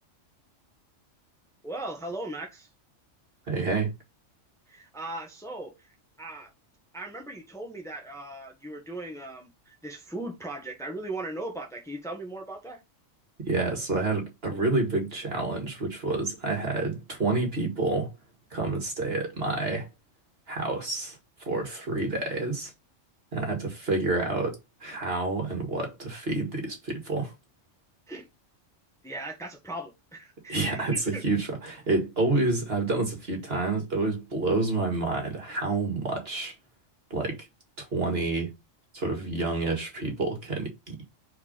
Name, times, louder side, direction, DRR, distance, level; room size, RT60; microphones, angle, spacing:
voice 1, 1.6-2.7 4.7-5.9 6.2-6.5 6.9-12.8 28.1-28.3 29.0-31.2, right 2 dB, ahead, 1.4 m, -38 dB
voice 2, 3.5-3.9 13.4-18.1 18.5-19.9 20.5-21.2 21.4-22.7 23.3-27.3 30.5-36.5 37.1-37.5 37.8-38.5 38.9-41.1, right 3 dB, 50° right, 2.3 m, -28 dB
4.8 x 4.6 x 5.2 m
omnidirectional pair, 1.3 m